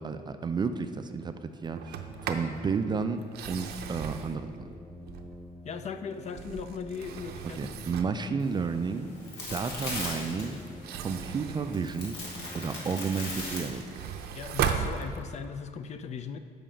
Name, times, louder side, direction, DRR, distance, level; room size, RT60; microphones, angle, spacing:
voice 1, 0.0-4.5 7.6-9.1 9.5-10.6 11.0-12.2 12.5-13.8, right 5 dB, 25° right, 9 dB, 0.3 m, -32 dB
sound 1, 1.8-13.1, left 1 dB, 20° left, 1.4 m, -48 dB
Sliding door, 1.8-2.6 3.2-5.6 6.1-8.3 10.7-12.6 13.1-15.6, right 7 dB, 70° right, 0.6 m, -36 dB
voice 2, 5.6-7.7 14.3-16.4, left 6 dB, 40° left, 10 dB, 0.4 m, -38 dB
sound 2, 8.4-14.3, left 1 dB, 75° left, 2.0 m, -39 dB
7.6 x 5.0 x 5.0 m, 2.3 s
cardioid pair, 110°, 17 cm